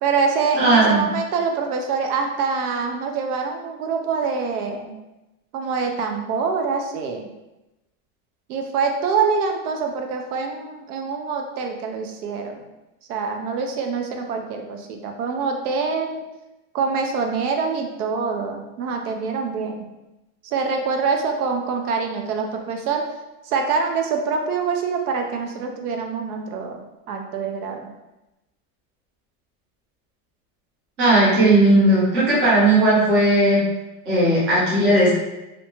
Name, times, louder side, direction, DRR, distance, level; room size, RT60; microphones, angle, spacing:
voice 1, 0.0-4.9 5.5-7.2 8.5-12.6 13.1-16.2 16.7-19.9 20.4-23.0 23.4-27.9, right 5 dB, 75° right, 4 dB, 0.6 m, -25 dB
voice 2, 0.6-1.0 31.0-33.6 34.1-35.1, right 1 dB, 20° right, -8 dB, 0.4 m, -16 dB
2.6 x 2.1 x 2.9 m, 0.99 s
supercardioid pair, 175°, 45 cm